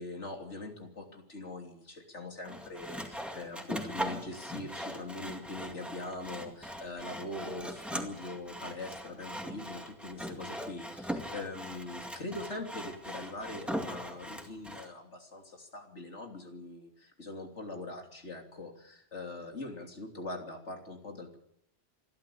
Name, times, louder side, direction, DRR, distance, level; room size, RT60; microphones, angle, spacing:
voice 1, 0.0-21.4, left 2 dB, 90° left, 3 dB, 3.6 m, -42 dB
Sawing, 2.4-14.9, equal, ahead, 2.2 m, -40 dB
26.5 x 12.0 x 8.7 m, 0.78 s
omnidirectional pair, 1.2 m